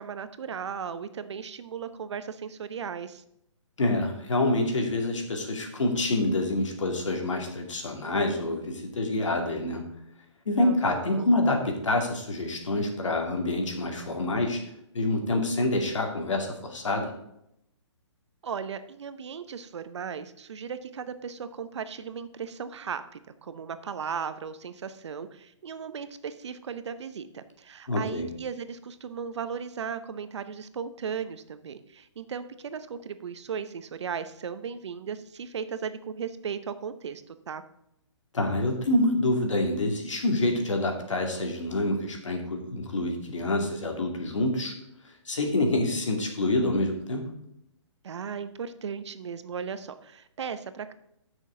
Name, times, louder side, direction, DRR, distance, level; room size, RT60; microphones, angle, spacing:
voice 1, 0.0-3.2 10.6-11.3 18.4-37.6 48.0-50.9, right 6 dB, 65° right, 12 dB, 0.9 m, -36 dB
voice 2, 3.8-9.8 10.5-14.6 14.9-17.1 27.9-28.3 38.3-44.7 45.0-47.3, left 2 dB, 85° left, 2 dB, 2.5 m, -27 dB
13.0 x 6.3 x 3.9 m, 0.78 s
hypercardioid pair, 145°, 16 cm